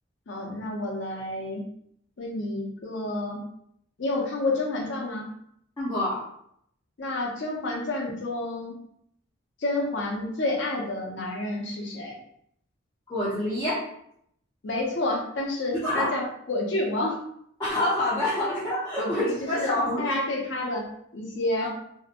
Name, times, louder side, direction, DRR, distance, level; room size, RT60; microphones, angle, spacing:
voice 1, 0.3-1.6 2.2-3.4 4.0-5.3 7.0-8.8 9.6-12.2 14.6-17.2 19.0-19.7 20.0-21.7, left 2 dB, 60° left, 0 dB, 0.6 m, -29 dB
voice 2, 5.8-6.2 13.1-13.8 15.8-16.1 17.6-20.0 21.6-21.7, left 1 dB, 15° left, -11 dB, 0.6 m, -27 dB
2.6 x 2.1 x 2.5 m, 0.70 s
head